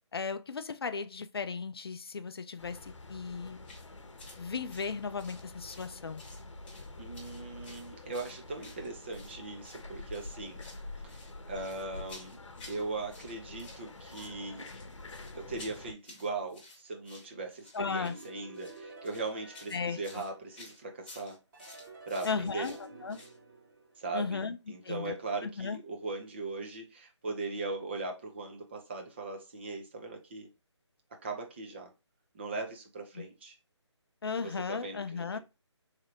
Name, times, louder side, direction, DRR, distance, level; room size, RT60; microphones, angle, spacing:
voice 1, 0.1-3.6 4.4-6.2 17.7-18.2 19.7-20.0 22.2-23.2 24.1-24.6 24.8-25.2 25.4-25.8 33.2-33.3 34.2-35.4, left 5 dB, 55° left, 0.4 m, -36 dB
sound 1, 2.6-15.9, left 2 dB, 80° left, 0.8 m, -47 dB
sound 2, 3.6-3.9 4.2-4.4 4.7-5.9 6.2-6.9 7.1-9.4 9.6-9.8 10.1-10.8 11.1-12.8 13.1-13.8 14.1-23.4, left 2 dB, 20° left, 1.0 m, -53 dB
voice 2, 7.0-10.6 11.0-12.4 12.7-14.7 15.3-21.4 22.1-22.7 24.0-30.5 31.2-31.9 32.3-33.6 34.4-35.4, right 3 dB, 25° right, 0.6 m, -39 dB
sound 3, 18.0-20.9 21.5-24.4, right 2 dB, 40° right, 1.8 m, -50 dB
3.7 x 3.2 x 2.8 m
figure-of-eight pair, 160°, 15 cm